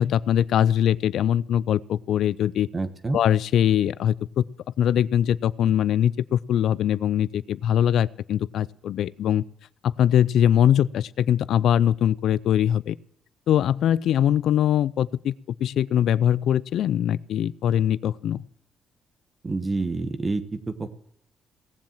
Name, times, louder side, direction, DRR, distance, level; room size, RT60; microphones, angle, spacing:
voice 1, 0.0-2.7 3.1-4.4 4.8-9.4 9.8-13.0 13.5-15.3 15.6-18.4, left 10 dB, 75° left, 20 dB, 0.4 m, -22 dB
voice 2, 2.7-3.2 19.4-20.9, right 3 dB, 25° right, 8 dB, 1.3 m, -28 dB
18.0 x 7.3 x 7.3 m, 0.68 s
cardioid pair, 90°, 0 cm